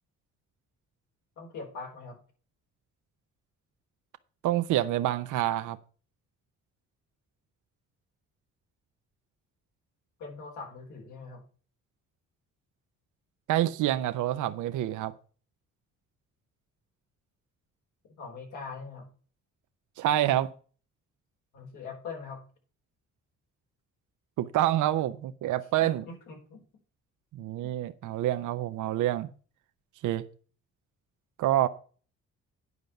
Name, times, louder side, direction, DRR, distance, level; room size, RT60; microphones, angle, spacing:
voice 1, 1.4-2.2 10.2-11.4 18.2-19.1 21.5-22.4 25.8-26.6 27.6-27.7, left 4 dB, 85° left, 4.5 m, -42 dB
voice 2, 4.4-5.8 13.5-15.1 20.0-20.5 24.4-26.0 27.3-29.3 30.0-30.2 31.4-31.7, right 13 dB, 80° right, 0.7 m, -27 dB
9.6 x 5.2 x 7.0 m
cardioid pair, 90°, 30 cm